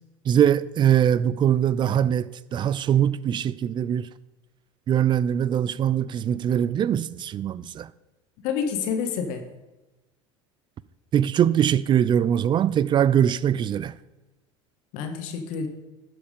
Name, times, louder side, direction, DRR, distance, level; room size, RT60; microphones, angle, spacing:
voice 1, 0.3-4.1 4.9-7.9 11.1-13.9, right 9 dB, 30° right, 0.4 m, -22 dB
voice 2, 8.4-9.5 14.9-15.7, left 6 dB, 60° left, 1.3 m, -28 dB
12.0 x 4.6 x 5.2 m
hypercardioid pair, 80°, 15 cm